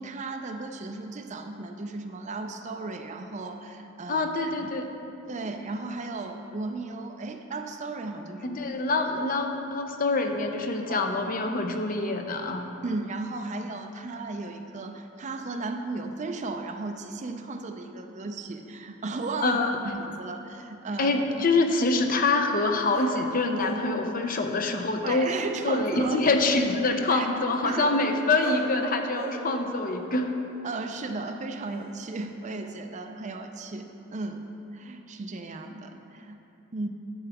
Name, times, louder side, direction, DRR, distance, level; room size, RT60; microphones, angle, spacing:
voice 1, 0.0-4.2 4.5-4.6 5.3-8.6 10.9-11.1 12.8-19.6 19.9-21.1 25.0-26.2 27.1-27.3 27.6-27.9 30.6-36.4 36.7-36.9, right 3 dB, 35° right, 6 dB, 0.4 m, -35 dB
voice 2, 4.1-4.9 8.4-12.7 19.4-19.8 21.0-25.4 25.6-30.3, left 3 dB, 45° left, 5 dB, 0.6 m, -25 dB
sound 1, 19.1-20.3 22.9-24.8 25.1-25.7 28.4-28.8 29.1-31.4 31.8-32.2, right 3 dB, 85° right, 1.0 m, -41 dB
11.0 x 6.9 x 3.5 m, 2.8 s
head